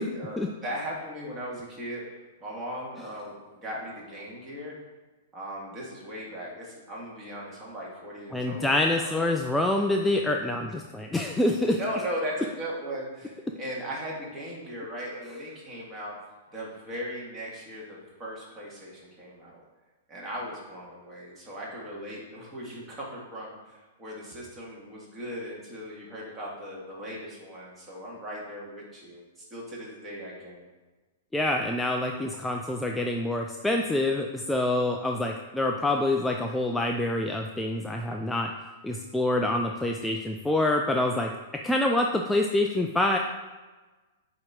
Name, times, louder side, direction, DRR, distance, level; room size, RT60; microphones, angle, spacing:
voice 1, 0.0-2.0 2.4-4.8 5.3-9.3 11.7-16.2 16.5-19.6 20.1-30.7, equal, 25° right, -4 dB, 1.9 m, -38 dB
voice 2, 8.3-11.8 31.3-38.6 38.8-43.2, left 1 dB, 5° left, 1 dB, 0.4 m, -26 dB
8.5 x 2.9 x 3.8 m, 1.3 s
hypercardioid pair, 110°, 0 cm